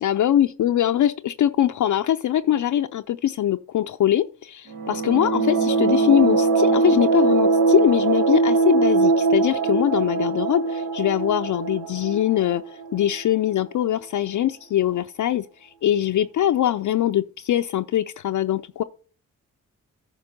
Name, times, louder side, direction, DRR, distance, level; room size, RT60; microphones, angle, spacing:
voice 1, 0.0-12.6 12.9-18.8, left 11 dB, 55° left, 0.5 m, -22 dB
sound 1, 4.7-13.3, right 4 dB, 85° right, 1.4 m, -21 dB
9.7 x 5.1 x 5.2 m
supercardioid pair, 55°, 36 cm